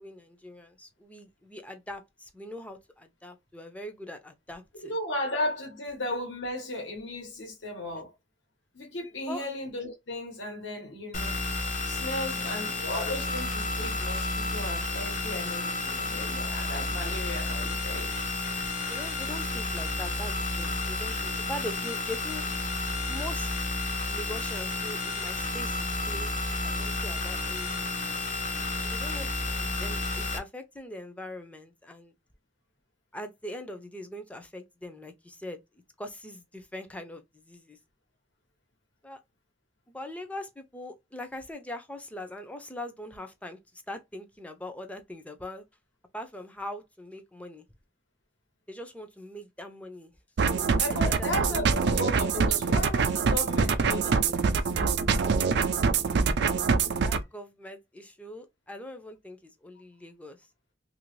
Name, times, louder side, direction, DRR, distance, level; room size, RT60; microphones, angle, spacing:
voice 1, 0.0-5.0 9.3-9.5 18.6-22.5 23.1-23.7 24.1-26.4 26.6-28.4 28.8-32.1 33.1-35.6 36.0-37.8 39.0-39.2 39.9-45.6 46.1-47.7 48.7-50.1 50.5-51.7 57.0-60.5, left 1 dB, 5° left, 0.5 m, -42 dB
voice 2, 4.7-8.1 8.7-11.4 11.8-18.1 50.8-54.7, left 1 dB, 75° left, 1.2 m, -35 dB
sound 1, 11.1-30.4, left 2 dB, 45° left, 0.7 m, -31 dB
sound 2, 50.4-57.2, right 5 dB, 60° right, 0.4 m, -25 dB
2.8 x 2.5 x 3.1 m
head